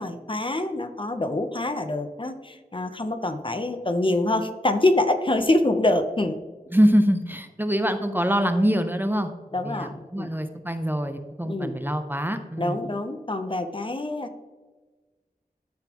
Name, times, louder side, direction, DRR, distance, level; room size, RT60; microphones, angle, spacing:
voice 1, 0.0-6.4 9.5-10.3 11.4-11.8 12.6-14.3, left 2 dB, 35° left, 7 dB, 0.6 m, -25 dB
voice 2, 6.7-9.3 9.6-12.8, equal, 15° right, 7 dB, 0.6 m, -24 dB
12.0 x 4.1 x 2.9 m, 1.3 s
wide cardioid pair, 50°, 16 cm